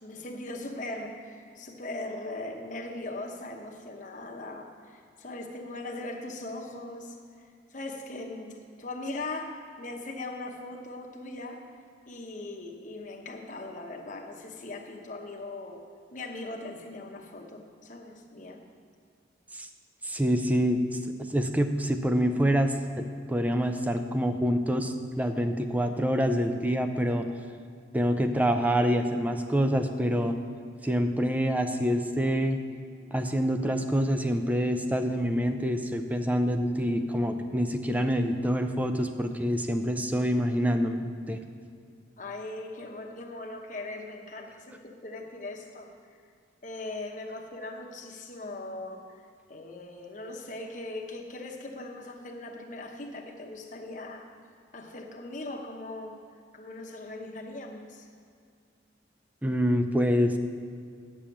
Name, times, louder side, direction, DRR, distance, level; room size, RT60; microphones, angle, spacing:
voice 1, 0.0-11.6 12.1-15.8 16.1-18.6 42.2-46.2 46.6-54.3 54.7-56.2 56.5-58.1, left 2 dB, 40° left, 2 dB, 1.0 m, -40 dB
voice 2, 20.0-20.8 21.3-27.3 27.9-30.4 30.8-32.6 33.1-41.4 59.4-60.4, equal, 10° right, 7 dB, 0.5 m, -26 dB
9.0 x 7.0 x 7.1 m, 2.3 s
head